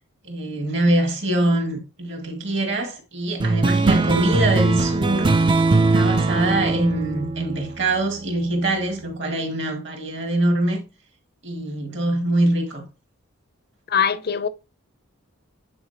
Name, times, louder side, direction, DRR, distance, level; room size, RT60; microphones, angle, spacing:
voice 1, 0.2-5.4 5.7-10.8 11.4-12.8, right 1 dB, 55° right, 2.1 m, -23 dB
sound 1, 3.4-8.3, right 3 dB, 20° right, 0.4 m, -20 dB
voice 2, 13.9-14.5, left 7 dB, 45° left, 0.5 m, -21 dB
8.8 x 4.4 x 2.9 m
head